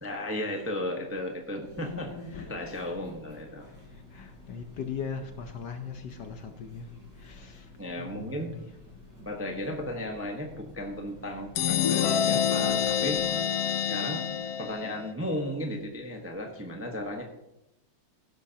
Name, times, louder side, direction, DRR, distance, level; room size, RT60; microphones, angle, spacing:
voice 1, 0.0-3.7 7.8-8.5 9.2-13.3 13.9-14.3 14.6-17.2, left 1 dB, 10° right, 2 dB, 0.7 m, -35 dB
sound 1, 1.6-13.3, left 3 dB, 40° right, 4.5 m, -48 dB
voice 2, 4.1-6.9 7.2-7.6 8.0-8.7, left 6 dB, 60° left, 6 dB, 1.3 m, -39 dB
sound 2, 11.5-15.1, left 8 dB, 85° left, 0.8 m, -27 dB
17.5 x 11.0 x 2.9 m, 0.90 s
omnidirectional pair, 2.4 m